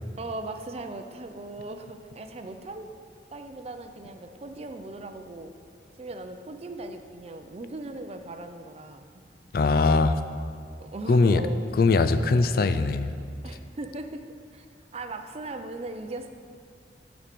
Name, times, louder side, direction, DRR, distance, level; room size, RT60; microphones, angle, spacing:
voice 1, 0.2-2.9 3.3-5.5 6.0-9.2 10.8-11.6 13.4-14.2 14.5-14.7 14.9-16.3, right 2 dB, 35° right, 7 dB, 0.5 m, -38 dB
voice 2, 9.5-10.2 11.1-11.4 11.8-13.1, left 3 dB, 55° left, 11 dB, 0.4 m, -21 dB
7.3 x 5.3 x 6.8 m, 2.2 s
head